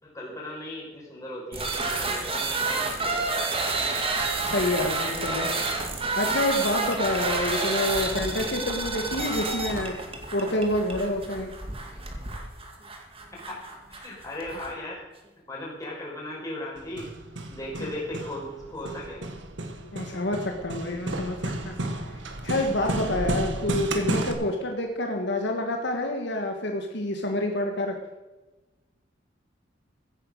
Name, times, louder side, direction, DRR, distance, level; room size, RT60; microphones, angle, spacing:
voice 1, 0.0-3.7 13.3-15.0 15.5-17.1 17.5-19.2 19.9-20.2, left 1 dB, 20° left, -4 dB, 5.5 m, -37 dB
sound 1, 1.5-14.7, right 3 dB, 30° right, 2.1 m, -29 dB
voice 2, 4.4-5.5 6.1-10.0 10.3-11.5 17.8-17.9 19.9-21.4 21.6-21.8 22.4-28.0, left 1 dB, 65° left, 3 dB, 1.6 m, -28 dB
Hammer, 16.8-24.3, right 1 dB, 75° right, 1.7 m, -32 dB
15.5 x 9.3 x 6.5 m, 1.1 s
head